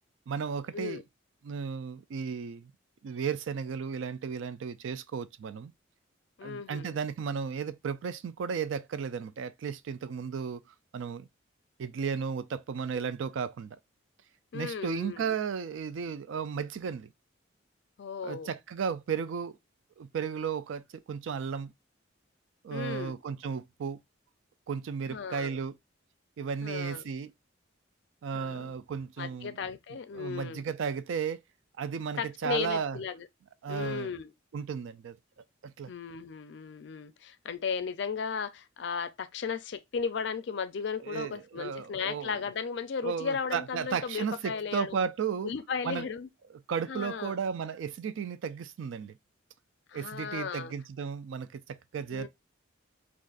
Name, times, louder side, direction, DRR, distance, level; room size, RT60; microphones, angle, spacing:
voice 1, 0.3-1.0 1.4-2.7 3.0-5.7 6.4-10.6 10.9-11.3 11.8-13.8 14.5-17.1 18.2-19.6 20.0-21.7 22.6-24.0 24.7-25.7 26.4-27.3 28.2-29.6 30.1-31.4 31.8-33.0 33.6-34.1 34.5-35.2 35.6-35.9 41.0-42.4 43.0-45.5 45.8-46.1 46.7-49.2 49.9-52.3, right 6 dB, 75° right, 0.3 m, -34 dB
voice 2, 6.4-7.0 14.5-15.3 18.0-18.5 22.7-23.1 25.1-25.6 26.6-27.0 28.3-28.7 29.2-30.6 32.2-33.3 33.7-34.3 35.9-45.1 45.4-46.3 46.9-47.4 49.9-50.7 52.1-52.3, left 6 dB, 60° left, 0.4 m, -35 dB
2.5 x 2.4 x 3.7 m
head